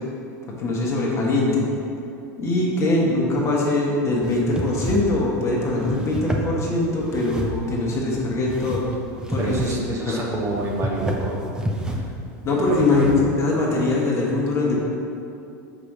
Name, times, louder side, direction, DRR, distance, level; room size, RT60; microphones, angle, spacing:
voice 1, 0.6-1.6 2.4-8.8 9.3-10.2 12.4-14.8, left 2 dB, 30° left, -3 dB, 1.4 m, -22 dB
sound 1, 4.2-13.2, equal, 10° right, 0.7 m, -30 dB
voice 2, 9.4-11.4 12.9-13.2, right 2 dB, 30° right, -1 dB, 1.3 m, -28 dB
5.2 x 4.8 x 6.0 m, 2.6 s
supercardioid pair, 120°, 9 cm